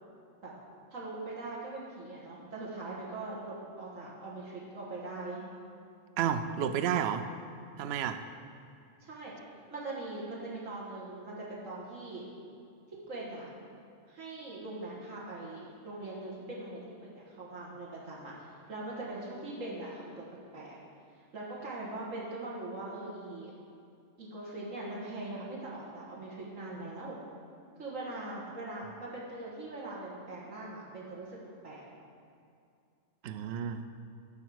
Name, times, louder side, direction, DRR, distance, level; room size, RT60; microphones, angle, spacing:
voice 1, 0.9-5.4 9.0-9.3 9.7-12.2 13.1-13.5 14.1-20.3 20.5-20.8 21.3-23.5 24.2-27.2 27.8-31.4 31.6-31.8, right 2 dB, 90° right, -6 dB, 1.9 m, -41 dB
voice 2, 6.2-7.3 7.8-8.2 33.2-33.8, right 8 dB, 65° right, 9 dB, 0.7 m, -31 dB
10.5 x 4.6 x 6.3 m, 2.4 s
omnidirectional pair, 1.3 m